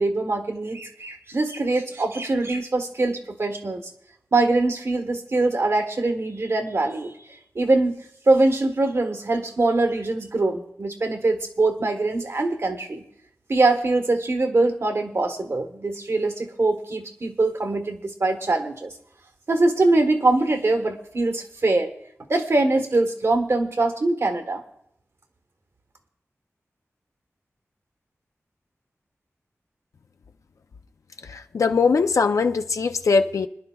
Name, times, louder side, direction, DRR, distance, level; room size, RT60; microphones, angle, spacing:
voice 1, 0.0-3.9 4.3-7.2 7.5-8.0 8.3-13.0 13.5-18.9 19.5-21.9 22.3-24.6, right 2 dB, 60° right, 6 dB, 1.2 m, -23 dB
voice 2, 31.3-33.5, left 4 dB, 85° left, 8 dB, 0.6 m, -21 dB
25.0 x 11.0 x 2.3 m, 0.71 s
wide cardioid pair, 85°, 5 cm